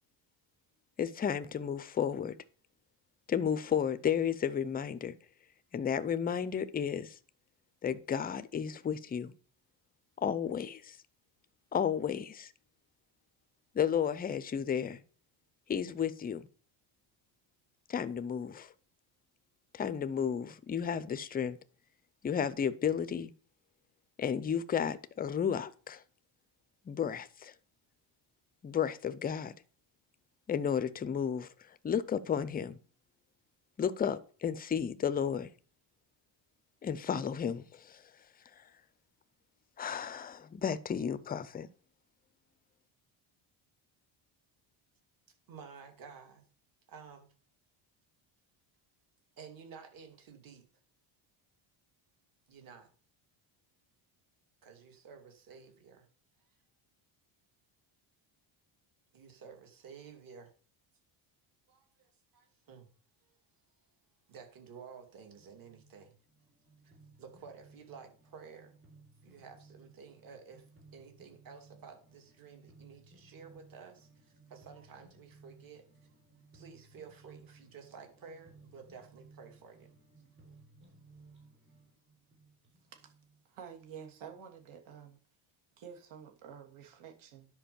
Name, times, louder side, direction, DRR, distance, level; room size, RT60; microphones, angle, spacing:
voice 1, 1.0-2.3 3.3-5.1 5.7-7.2 7.8-9.3 10.2-11.0 11.7-12.5 13.7-15.0 15.7-16.4 17.9-18.7 19.7-21.6 22.2-23.3 24.2-26.0 26.9-27.5 28.6-29.5 30.5-31.5 31.8-32.8 33.8-35.5 36.8-38.0 39.8-41.7, left 8 dB, 20° left, 0.4 m, -32 dB
voice 2, 45.5-46.4 46.9-47.3 49.4-50.6 52.5-52.9 54.6-56.1 59.1-60.5 61.7-62.1 62.3-62.9 64.3-66.1 66.8-68.7 69.2-70.6 70.9-75.8 76.5-79.9 81.3-81.4, right 6 dB, 40° right, 2.6 m, -52 dB
sound 1, 65.3-84.4, right 3 dB, 25° right, 3.6 m, -60 dB
voice 3, 83.4-85.2 85.8-87.5, right 7 dB, 70° right, 2.9 m, -50 dB
10.5 x 5.2 x 6.9 m
cardioid pair, 175°, 50 cm